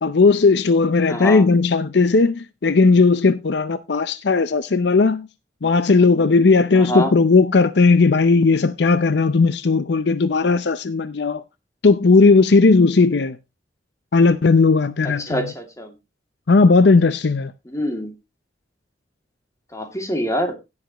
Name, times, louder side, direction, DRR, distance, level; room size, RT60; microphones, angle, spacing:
voice 1, 0.0-5.3 5.6-11.4 11.8-13.4 14.1-15.4 16.5-17.5, left 4 dB, 65° left, 0.6 m, -16 dB
voice 2, 1.1-1.4 6.8-7.1 15.2-15.9 17.7-18.1 19.7-20.5, equal, 15° left, 2.5 m, -25 dB
16.5 x 7.3 x 3.0 m
head